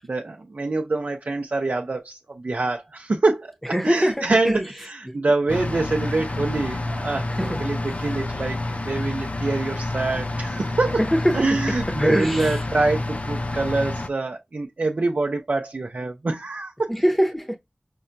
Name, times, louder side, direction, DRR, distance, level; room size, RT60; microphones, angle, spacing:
voice 1, 0.1-11.0 11.3-16.9, right 3 dB, 90° right, 0.6 m, -25 dB
voice 2, 3.7-4.6 5.1-5.2 7.4-7.6 11.0-12.6 16.9-17.6, equal, 5° left, 0.8 m, -23 dB
sound 1, 5.5-14.1, left 2 dB, 60° left, 0.6 m, -29 dB
5.4 x 2.2 x 2.6 m
wide cardioid pair, 50°, 3 cm